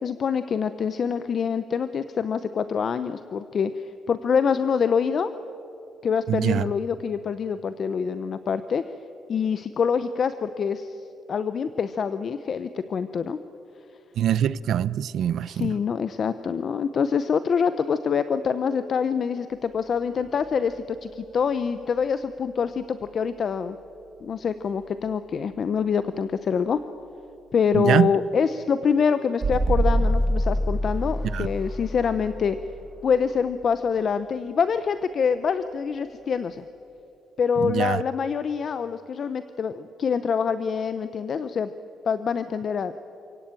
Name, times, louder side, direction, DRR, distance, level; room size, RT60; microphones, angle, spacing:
voice 1, 0.0-5.3 6.0-8.8 9.3-11.0 11.3-13.4 15.5-23.8 24.2-26.8 27.5-32.6 33.0-36.6 37.4-41.7 42.0-42.9, left 6 dB, 45° left, 12 dB, 0.7 m, -25 dB
voice 2, 6.3-6.6 14.2-15.7 27.7-28.1 31.3-31.5 37.6-38.0, right 10 dB, 70° right, 18 dB, 0.6 m, -23 dB
sound 1, 20.2-21.1 22.8-22.9 29.4-34.1, right 1 dB, 30° right, 2.5 m, -26 dB
27.5 x 17.0 x 9.0 m, 2.9 s
cardioid pair, 160°, 0 cm